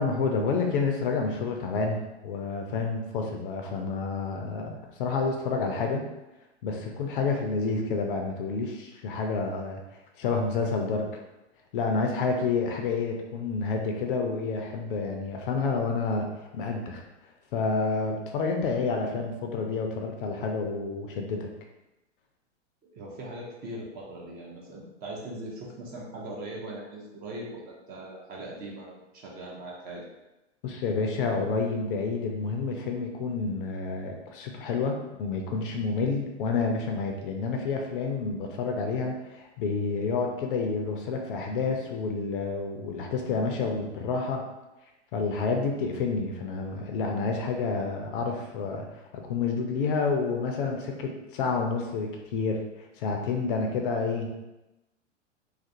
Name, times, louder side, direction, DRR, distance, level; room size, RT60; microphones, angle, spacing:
voice 1, 0.0-6.0 6.6-9.8 10.2-11.1 11.7-17.0 17.5-21.5 30.6-44.5 45.1-54.3, left 4 dB, 50° left, 2 dB, 0.4 m, -29 dB
voice 2, 22.9-30.0, right 1 dB, 25° right, -2 dB, 0.5 m, -40 dB
2.4 x 2.4 x 2.5 m, 0.98 s
figure-of-eight pair, 95°, 36 cm